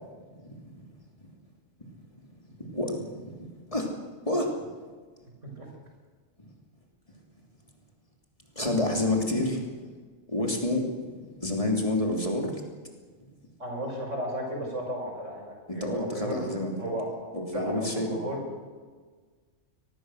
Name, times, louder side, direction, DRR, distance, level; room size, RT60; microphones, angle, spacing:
voice 1, 2.4-3.9 4.2-4.5 8.5-9.6 10.3-12.6 15.7-16.7 17.3-18.1, left 1 dB, 30° left, 1 dB, 3.2 m, -29 dB
voice 2, 13.6-16.5 16.8-18.5, equal, 80° right, 1 dB, 6.3 m, -34 dB
23.0 x 19.5 x 6.5 m, 1.5 s
omnidirectional pair, 1.2 m